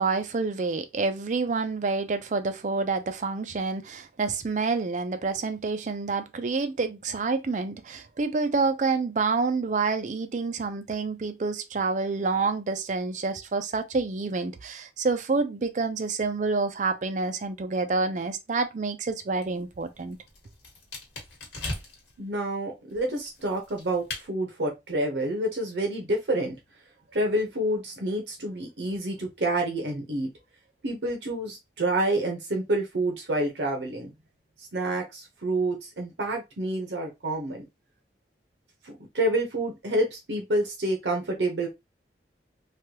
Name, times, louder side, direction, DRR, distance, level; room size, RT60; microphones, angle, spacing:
voice 1, 0.0-20.2, right 4 dB, 45° right, 0.4 m, -28 dB
sound 1, 19.3-22.2 22.9-24.3, left 2 dB, 70° left, 1.3 m, -39 dB
voice 2, 22.2-26.5 27.1-30.3 30.8-34.1 34.7-37.6 38.8-41.7, right 1 dB, 75° right, 0.8 m, -28 dB
3.3 x 2.2 x 2.9 m
head